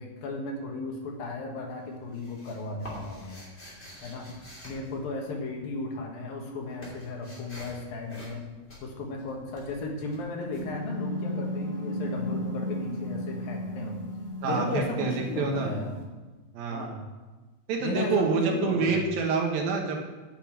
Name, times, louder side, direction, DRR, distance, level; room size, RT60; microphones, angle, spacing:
voice 1, 0.0-3.5 4.0-4.3 4.6-8.4 8.8-14.0 14.4-15.9 16.7-17.0 17.8-19.1, left 3 dB, 75° left, 1 dB, 3.2 m, -35 dB
sound 1, 0.9-1.4 1.7-5.8 6.0-11.6, equal, 20° left, 2.7 m, -47 dB
sound 2, 10.4-16.0, left 1 dB, 10° right, 1.3 m, -34 dB
voice 2, 14.4-15.7 16.5-16.9 17.7-20.0, right 4 dB, 75° right, 1 dB, 3.1 m, -27 dB
9.4 x 6.7 x 7.4 m, 1.2 s
omnidirectional pair, 4.3 m